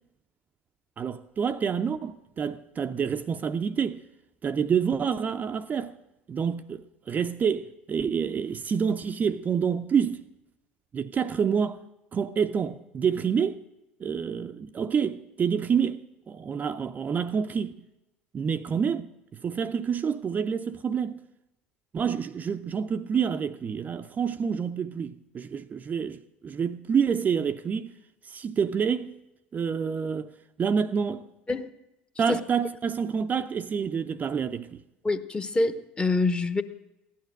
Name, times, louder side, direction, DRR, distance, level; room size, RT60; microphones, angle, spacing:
voice 1, 1.0-4.0 4.4-6.0 6.3-10.2 10.9-11.8 12.1-13.6 14.0-17.8 18.3-21.2 21.9-27.9 28.2-29.2 29.5-30.3 30.6-31.3 32.2-34.8, right 7 dB, 25° right, 0.5 m, -28 dB
voice 2, 35.0-36.6, left 3 dB, 15° left, 0.9 m, -26 dB
16.0 x 11.0 x 6.4 m
figure-of-eight pair, 65°, 6 cm